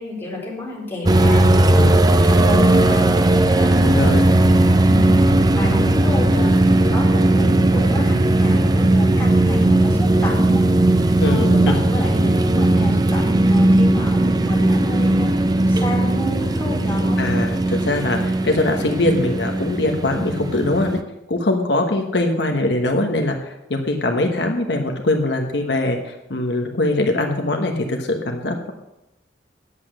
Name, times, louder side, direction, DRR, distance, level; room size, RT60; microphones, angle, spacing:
voice 1, 0.0-1.8 2.1-4.2 4.8-5.2 5.5-10.6 11.2-15.3 15.7-17.2, left 1 dB, 10° left, -5 dB, 4.1 m, -29 dB
sound 1, 1.1-21.0, right 1 dB, 20° right, 0.5 m, -17 dB
voice 2, 3.8-4.2 11.2-11.7 17.2-21.0 21.3-28.7, left 2 dB, 80° left, 3 dB, 1.1 m, -22 dB
9.6 x 8.0 x 6.4 m, 0.89 s
head